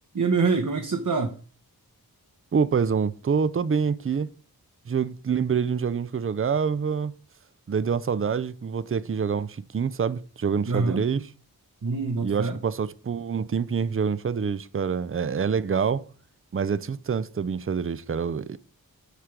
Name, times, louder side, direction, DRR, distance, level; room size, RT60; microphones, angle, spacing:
voice 1, 0.1-1.3 10.7-11.0 11.8-12.6, right 4 dB, 55° right, 1.1 m, -25 dB
voice 2, 2.5-4.3 4.9-7.1 7.7-11.3 12.2-16.0 16.5-18.6, right 6 dB, 35° right, 0.5 m, -26 dB
8.1 x 5.0 x 5.9 m
wide cardioid pair, 55°, 37 cm